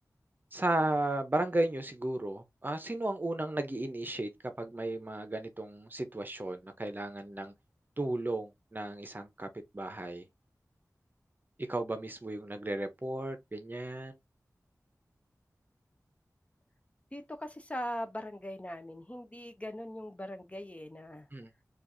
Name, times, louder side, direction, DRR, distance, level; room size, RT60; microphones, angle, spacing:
voice 1, 0.5-4.3 4.6-7.5 8.0-9.5 9.7-10.2 11.7-14.1 21.3-21.5, right 1 dB, 30° right, 0.7 m, -34 dB
voice 2, 17.1-21.3, equal, 20° left, 0.6 m, -40 dB
4.4 x 2.4 x 2.6 m
wide cardioid pair, 65°, 6 cm